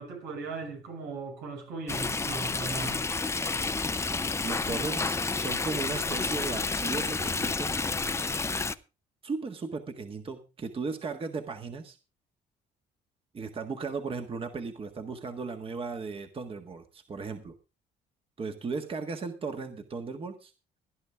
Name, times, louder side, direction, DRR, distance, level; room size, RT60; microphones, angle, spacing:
voice 1, 0.0-3.0, right 4 dB, 90° right, 3 dB, 6.1 m, -38 dB
Stream, 1.9-8.7, left 3 dB, 15° left, 0.7 m, -30 dB
voice 2, 4.4-7.7 9.2-12.0 13.3-17.5 18.4-20.5, right 4 dB, 35° right, 6 dB, 1.7 m, -36 dB
17.5 x 11.0 x 3.6 m, 0.30 s
cardioid pair, 110°, 17 cm